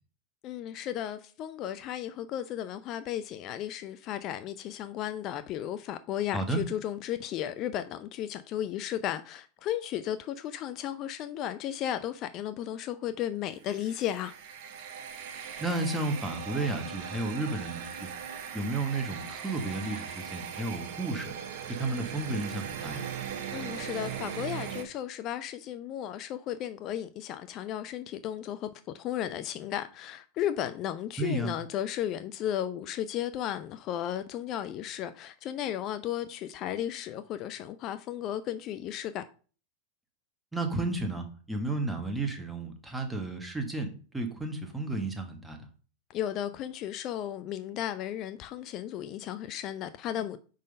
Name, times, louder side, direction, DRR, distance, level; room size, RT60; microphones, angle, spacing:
voice 1, 0.4-14.3 23.5-28.7 28.9-39.2 46.1-50.4, left 11 dB, 45° left, 0.4 m, -34 dB
sound 1, 13.6-24.8, right 8 dB, 60° right, 1.0 m, -39 dB
voice 2, 15.6-18.1 18.5-21.3 21.7-23.0 31.2-31.5 40.5-43.9 44.1-45.7, right 2 dB, 5° right, 1.5 m, -32 dB
5.2 x 3.9 x 5.2 m
hypercardioid pair, 100°, 0 cm